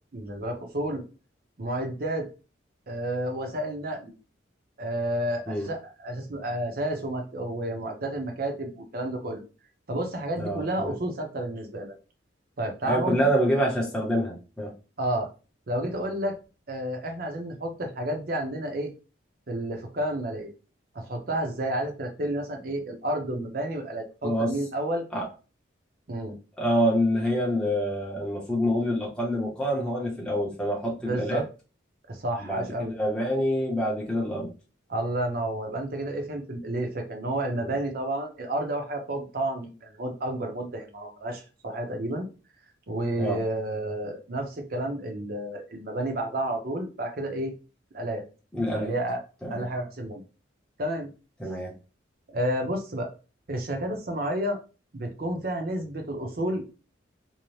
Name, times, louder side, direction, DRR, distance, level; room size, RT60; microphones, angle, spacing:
voice 1, 0.1-1.0 1.6-2.3 2.9-4.1 4.8-9.4 9.9-11.9 12.6-13.3 15.0-15.3 15.7-16.3 16.7-18.9 19.5-20.5 20.9-25.0 26.1-26.4 31.1-31.4 32.1-32.9 34.9-42.3 42.9-47.5 47.9-48.2 48.7-49.2 49.5-50.2 50.8-51.1 52.3-53.1 53.5-54.6 54.9-56.7, right 1 dB, 50° right, 0.6 m, -30 dB
voice 2, 10.4-10.9 12.8-14.7 24.2-24.6 25.1-25.3 26.6-31.4 32.4-34.5 37.6-37.7 43.2-43.4 48.5-48.9 49.4-49.6 51.4-51.7, equal, 5° left, 0.6 m, -26 dB
2.7 x 2.1 x 3.0 m
head